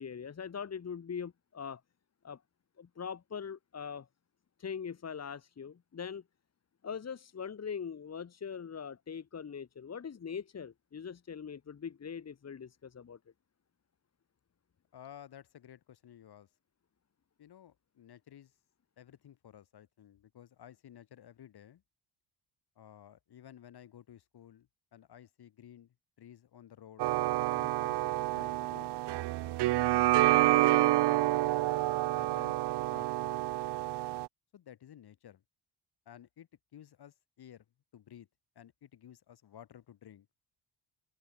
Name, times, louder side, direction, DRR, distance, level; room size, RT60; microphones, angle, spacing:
voice 1, 0.0-1.8 2.2-2.4 2.8-4.1 4.6-6.2 6.8-13.2, left 6 dB, 35° left, 3.3 m, -42 dB
voice 2, 14.9-16.5 17.4-18.5 19.0-21.8 22.8-27.1 27.5-29.0 29.9-31.3 32.1-32.6 32.9-33.4 34.5-35.4 36.1-37.7 37.9-38.3 38.6-40.3, left 10 dB, 60° left, 5.7 m, -54 dB
sound 1, 27.0-34.3, right 17 dB, 70° right, 0.6 m, -28 dB
open air
cardioid pair, 145°, 43 cm